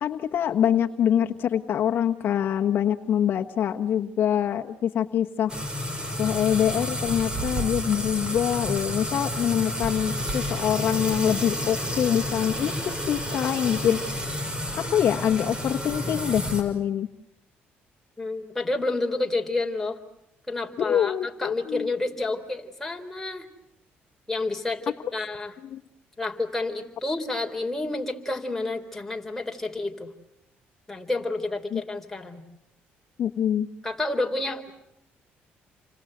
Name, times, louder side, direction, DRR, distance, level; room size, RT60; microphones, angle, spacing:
voice 1, 0.0-5.5 6.2-14.0 14.9-17.1 20.8-21.9 25.7-25.8 31.7-31.8 33.2-33.7, left 9 dB, 60° left, 5 dB, 1.3 m, -25 dB
sound 1, 5.5-16.6, equal, 20° right, 6.1 m, -30 dB
voice 2, 18.2-20.0 20.5-23.5 24.3-25.6 26.2-30.1 30.9-32.4 33.8-34.7, left 2 dB, 10° left, 2 dB, 3.9 m, -29 dB
29.5 x 25.5 x 7.9 m, 0.82 s
cardioid pair, 105°, 4 cm